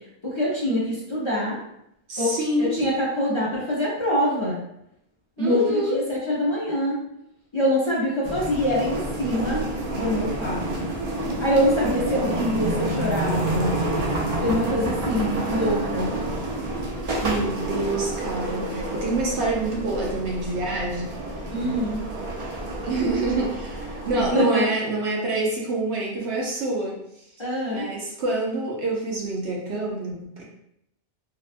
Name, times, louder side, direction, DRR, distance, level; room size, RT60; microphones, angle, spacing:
voice 1, 0.2-1.6 2.2-4.6 5.4-7.0 7.5-9.7 9.9-10.9 11.4-13.8 14.4-16.1 21.5-22.0 24.3-24.7 27.4-27.9, equal, 35° left, -6 dB, 0.5 m, -24 dB
voice 2, 2.1-2.8 5.4-6.0 17.2-21.1 21.6-21.8 22.6-27.0 27.7-30.4, right 2 dB, 75° right, -2 dB, 0.9 m, -27 dB
sound 1, 8.2-24.3, right 1 dB, 50° right, 0.4 m, -29 dB
2.7 x 2.2 x 2.5 m, 0.78 s
omnidirectional pair, 1.1 m